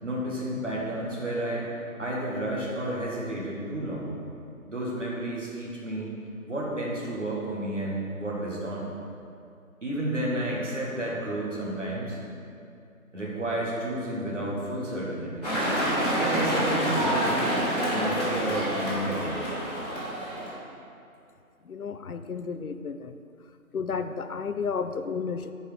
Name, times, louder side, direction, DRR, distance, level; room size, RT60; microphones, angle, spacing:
voice 1, 0.0-1.7 2.0-4.1 4.7-6.1 6.5-8.9 9.8-12.2 13.1-15.5 16.2-17.5 17.9-19.5, right 1 dB, 55° right, -5 dB, 1.9 m, -31 dB
sound 1, 15.4-20.5, equal, 25° left, 1.7 m, -27 dB
voice 2, 21.7-23.1 23.7-25.5, left 5 dB, 75° left, 9 dB, 0.6 m, -32 dB
6.4 x 4.9 x 6.1 m, 2.5 s
figure-of-eight pair, 180°, 44 cm